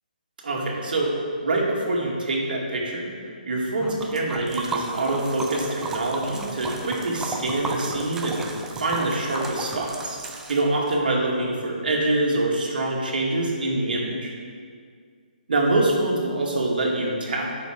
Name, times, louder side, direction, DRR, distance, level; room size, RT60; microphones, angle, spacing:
voice 1, 0.4-1.1 1.4-3.1 3.5-10.2 10.5-14.3 15.5-17.6, right 2 dB, 70° right, -3 dB, 2.3 m, -25 dB
Liquid, 3.8-11.0, right 3 dB, 5° right, 0.5 m, -34 dB
9.3 x 6.4 x 5.2 m, 2.1 s
hypercardioid pair, 160°, 5 cm